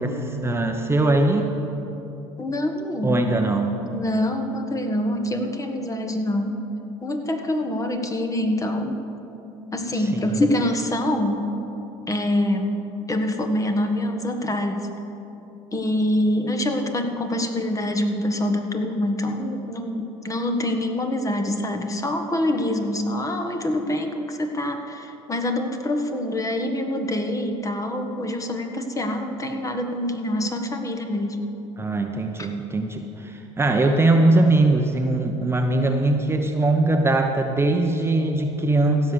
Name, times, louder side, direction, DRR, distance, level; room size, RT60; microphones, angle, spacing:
voice 1, 0.0-1.5 3.0-3.7 9.9-10.4 31.8-39.1, right 2 dB, 15° right, 4 dB, 0.9 m, -21 dB
voice 2, 2.4-3.5 3.9-6.6 7.0-9.0 9.7-11.5 12.1-12.7 13.1-14.9 15.7-31.4 32.4-32.5, left 1 dB, 20° left, 5 dB, 1.4 m, -25 dB
16.0 x 6.4 x 6.8 m, 2.9 s
hypercardioid pair, 80°, 15 cm